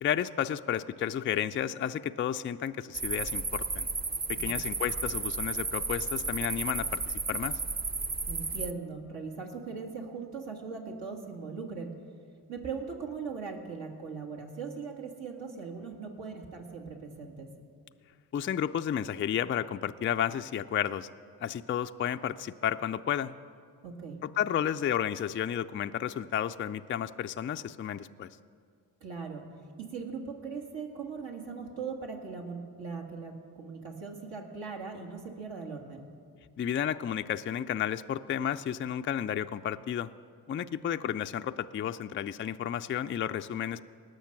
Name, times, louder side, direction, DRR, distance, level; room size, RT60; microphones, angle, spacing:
voice 1, 0.0-3.9 4.3-7.6 18.3-21.1 21.4-23.3 24.4-28.3 36.6-40.1 40.5-43.8, left 9 dB, 30° left, 9 dB, 0.3 m, -32 dB
sound 1, 2.9-8.7, right 4 dB, 20° right, 0.6 m, -33 dB
voice 2, 8.3-11.9 12.5-17.5 23.8-24.2 29.0-29.5 29.8-36.1 40.6-40.8, right 5 dB, 65° right, 2 dB, 2.0 m, -40 dB
19.0 x 6.6 x 5.9 m, 2.2 s
hypercardioid pair, 40°, 47 cm